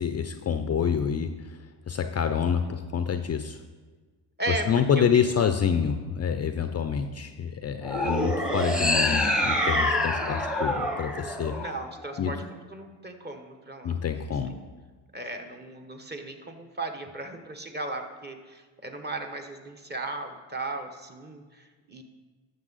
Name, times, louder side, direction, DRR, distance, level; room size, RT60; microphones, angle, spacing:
voice 1, 0.0-1.6 1.9-3.6 4.7-11.6 12.2-12.3 13.8-14.6, left 7 dB, 35° left, 8 dB, 0.5 m, -27 dB
voice 2, 4.4-5.3 8.0-8.2 11.5-14.0 14.5-14.6 15.1-22.0, right 2 dB, 20° right, 4 dB, 1.1 m, -36 dB
sound 1, 7.8-12.2, left 1 dB, ahead, 1.0 m, -26 dB
12.0 x 6.9 x 4.0 m, 1.4 s
cardioid pair, 80°, 45 cm